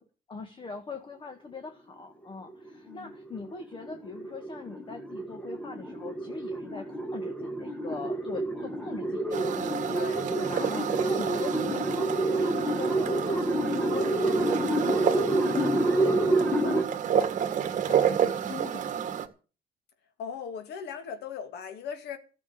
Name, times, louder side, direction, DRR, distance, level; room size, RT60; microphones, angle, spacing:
voice 1, 0.3-10.0 10.4-17.3 17.7-19.1, left 4 dB, 30° left, 1.8 m, -42 dB
sound 1, 2.5-16.8, right 1 dB, 5° left, 1.8 m, -29 dB
sound 2, 9.3-19.3, right 9 dB, 50° right, 1.8 m, -30 dB
voice 2, 9.9-10.9 20.2-22.2, left 7 dB, 75° left, 2.5 m, -39 dB
14.0 x 7.3 x 9.0 m
cardioid pair, 110°, 17 cm